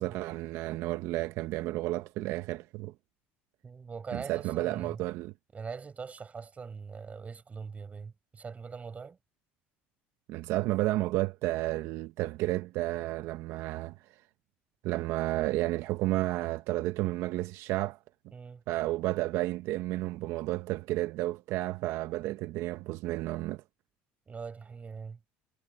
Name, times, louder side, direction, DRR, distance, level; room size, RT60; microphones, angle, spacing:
voice 1, 0.0-2.9 4.1-5.3 10.3-14.2 14.8-18.0 18.7-23.6, right 17 dB, 70° right, 0.8 m, -32 dB
voice 2, 3.6-5.0 5.5-9.2 18.3-18.6 24.3-25.2, right 5 dB, 30° right, 5.9 m, -42 dB
supercardioid pair, 90°, 5 cm